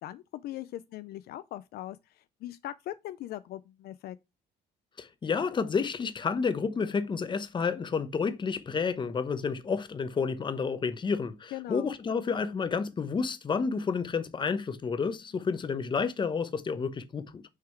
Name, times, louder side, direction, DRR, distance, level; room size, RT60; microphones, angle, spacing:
voice 1, 0.0-4.2 11.5-11.9, left 14 dB, 65° left, 0.4 m, -40 dB
voice 2, 5.0-17.4, left 5 dB, 30° left, 0.8 m, -30 dB
6.3 x 3.7 x 4.5 m
cardioid pair, 110°, 17 cm